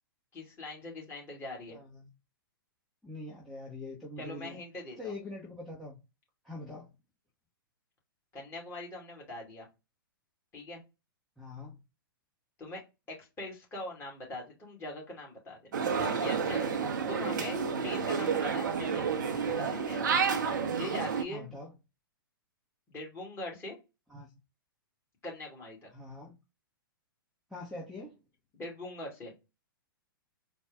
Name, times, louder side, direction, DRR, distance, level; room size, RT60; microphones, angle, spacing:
voice 1, 0.3-1.8 4.2-5.1 8.3-9.7 10.5-10.8 12.6-12.8 13.1-16.7 17.1-17.6 17.8-20.0 20.7-21.6 22.9-23.8 25.2-25.9 28.5-29.3, left 2 dB, 20° left, 2.2 m, -42 dB
voice 2, 1.7-2.1 3.0-4.6 5.0-6.0 6.4-6.9 11.4-11.8 21.3-21.7 24.1-24.4 25.9-26.4 27.5-28.2, left 2 dB, ahead, 1.0 m, -43 dB
sound 1, 15.7-21.2, right 6 dB, 55° right, 0.8 m, -30 dB
4.2 x 2.3 x 3.6 m
figure-of-eight pair, 110°, 12 cm